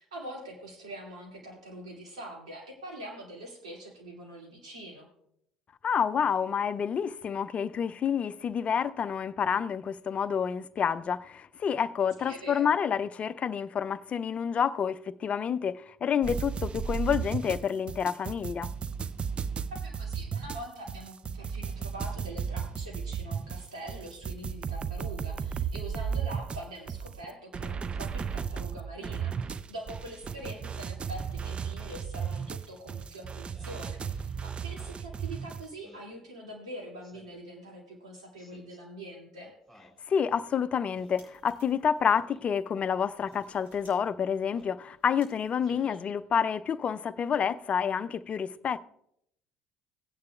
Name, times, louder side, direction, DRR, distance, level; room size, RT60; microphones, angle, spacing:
voice 1, 0.0-5.1 12.2-12.7 19.7-39.5 45.7-46.0, right 1 dB, 85° right, 2.4 m, -44 dB
voice 2, 5.8-18.7 40.1-48.8, left 7 dB, 40° left, 0.4 m, -29 dB
sound 1, 16.2-35.6, right 6 dB, 35° right, 0.4 m, -35 dB
Speech synthesizer, 33.5-33.8 34.7-35.1 35.8-36.1 37.0-37.5 38.4-38.8 39.7-40.0 40.9-41.2 42.2-42.4 43.3-43.5 44.4-44.8 45.6-46.0, equal, 10° right, 4.5 m, -56 dB
sound 2, 40.7-42.0 42.5-42.6 43.0-43.9 44.2-46.2, right 1 dB, 60° right, 4.7 m, -63 dB
17.5 x 9.4 x 2.3 m
hypercardioid pair, 65°, 3 cm